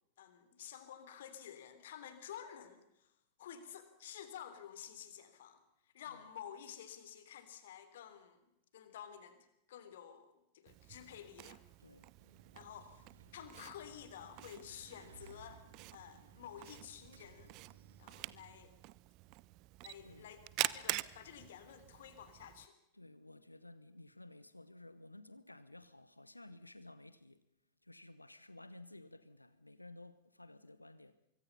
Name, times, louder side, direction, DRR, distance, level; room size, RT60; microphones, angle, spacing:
voice 1, 0.2-3.1 3.4-8.4 8.7-11.6 12.5-13.0 13.3-15.6 15.9-17.5 18.0-18.7 19.8-22.7, left 9 dB, 60° left, 3.4 m, -51 dB
Camera, 10.7-22.7, right 20 dB, 40° right, 0.8 m, -46 dB
voice 2, 11.8-12.1 20.0-20.3 22.9-27.4 27.8-31.2, left 2 dB, 85° left, 1.1 m, -55 dB
sound 1, 12.2-18.6, right 6 dB, 65° right, 2.0 m, -61 dB
25.0 x 24.0 x 5.6 m
figure-of-eight pair, 90°, 0 cm